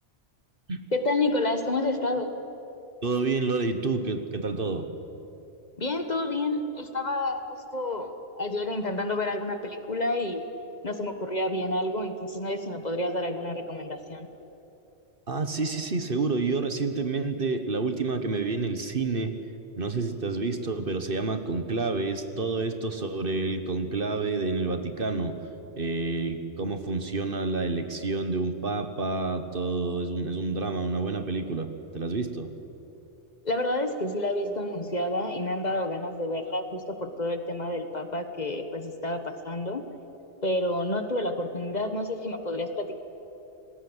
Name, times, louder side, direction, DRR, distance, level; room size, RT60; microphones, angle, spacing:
voice 1, 0.9-2.3 5.8-10.4 10.8-14.3 33.4-39.8 40.4-43.0, left 1 dB, 40° left, 7 dB, 1.6 m, -29 dB
voice 2, 3.0-4.9 15.3-19.4 19.8-25.4 25.8-31.7 31.9-32.5, right 3 dB, 50° right, 8 dB, 1.5 m, -29 dB
28.5 x 19.5 x 8.1 m, 2.9 s
omnidirectional pair, 1.2 m